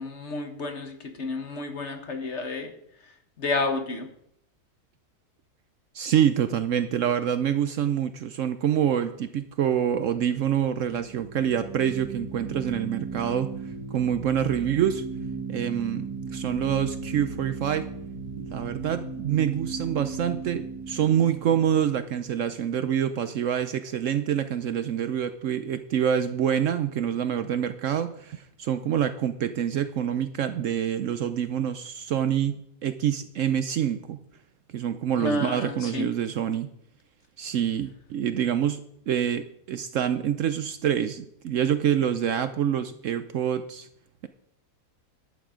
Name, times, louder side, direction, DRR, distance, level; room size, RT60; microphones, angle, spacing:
voice 1, 0.0-2.7 3.4-4.1 35.2-36.1, left 3 dB, 50° left, 6 dB, 1.4 m, -30 dB
voice 2, 5.9-13.5 13.9-15.0 15.5-17.9 18.4-34.2 34.7-36.7 37.4-43.9, right 9 dB, 65° right, 11 dB, 0.9 m, -26 dB
sound 1, 10.3-23.1, right 4 dB, 90° right, 3.0 m, -37 dB
11.0 x 8.6 x 5.0 m, 0.72 s
omnidirectional pair, 1.6 m